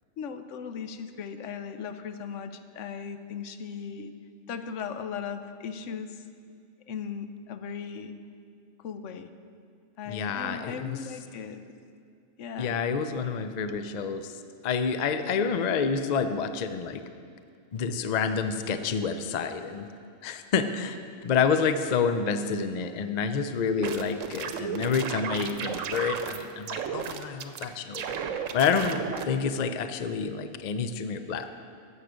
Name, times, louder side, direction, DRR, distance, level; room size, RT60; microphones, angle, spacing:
voice 1, 0.2-4.1 4.5-6.2 6.9-8.2 8.8-9.3 10.0-11.7 12.4-12.8 13.7-13.8, left 6 dB, 75° left, 9 dB, 1.0 m, -37 dB
voice 2, 10.1-11.0 12.6-14.3 14.6-17.0 17.7-19.9 20.2-21.0 21.2-28.0 28.5-31.5, left 6 dB, 55° left, 9 dB, 0.5 m, -28 dB
sound 1, 23.6-26.4 26.7-27.7 27.9-29.3, right 7 dB, 85° right, 1.1 m, -33 dB
12.5 x 7.4 x 5.0 m, 2.3 s
omnidirectional pair, 1.3 m